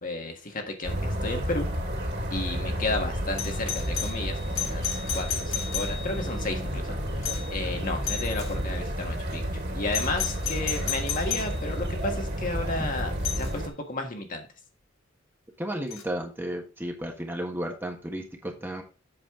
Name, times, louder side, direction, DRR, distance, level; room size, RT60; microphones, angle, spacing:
voice 1, 0.0-1.7 2.3-9.4 9.7-14.5, left 2 dB, 40° left, 3 dB, 1.7 m, -33 dB
sound 1, 0.8-13.7, equal, 55° right, 2.8 m, -31 dB
Doorbell, 3.4-6.3 7.2-7.6 8.0-8.6 9.9-11.6 13.2-13.5 15.9-16.0, left 9 dB, 85° left, 1.6 m, -33 dB
voice 2, 15.6-18.8, right 1 dB, 10° right, 2 dB, 1.4 m, -33 dB
8.1 x 6.6 x 3.8 m, 0.32 s
head